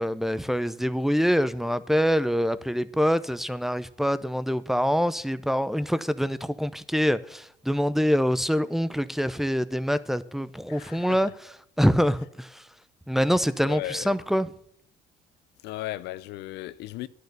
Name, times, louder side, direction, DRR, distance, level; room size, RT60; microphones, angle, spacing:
voice 1, 0.0-12.6 13.1-14.5, equal, ahead, 0.6 m, -25 dB
voice 2, 10.7-11.3 13.7-14.2 15.6-17.1, left 15 dB, 85° left, 0.5 m, -36 dB
11.0 x 6.7 x 8.1 m
cardioid pair, 110°, 17 cm